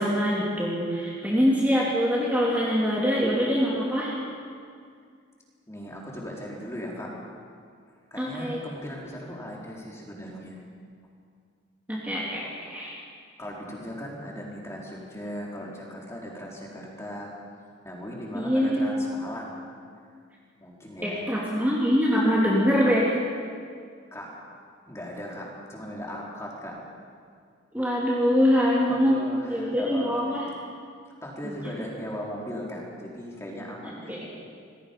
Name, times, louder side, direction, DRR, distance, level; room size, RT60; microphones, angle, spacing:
voice 1, 0.0-4.2 8.2-8.6 11.9-12.9 18.3-19.1 21.0-23.2 27.7-30.5 31.4-31.6 33.8-34.3, equal, 10° right, -6 dB, 3.0 m, -24 dB
voice 2, 5.7-7.1 8.1-10.6 13.4-17.3 17.8-19.7 20.6-21.3 24.1-24.4 24.9-26.8 28.9-30.4 31.2-34.2, equal, 15° left, -4 dB, 4.1 m, -38 dB
27.5 x 21.5 x 5.4 m, 2.2 s
head